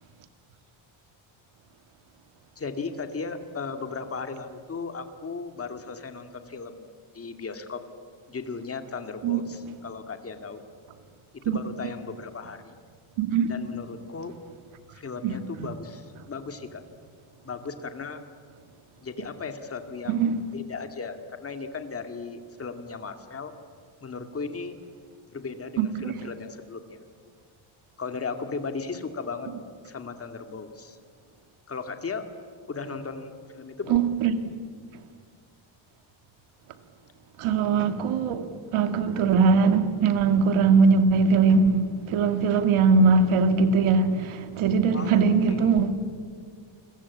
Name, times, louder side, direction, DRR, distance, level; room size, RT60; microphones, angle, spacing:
voice 1, 2.6-6.9 7.1-7.8 8.3-10.6 11.4-12.7 13.5-14.3 14.9-16.8 17.4-18.2 19.0-23.5 24.0-24.8 25.3-27.0 28.0-29.5 29.8-31.0 31.7-32.3 32.7-34.0 44.9-45.7, left 4 dB, 30° left, 2.2 m, -36 dB
voice 2, 13.2-13.5 15.2-15.7 20.1-20.4 25.8-26.1 33.9-34.4 37.4-38.5 38.7-45.9, right 5 dB, 75° right, 2.2 m, -21 dB
29.0 x 22.5 x 8.5 m
cardioid pair, 150°, 49 cm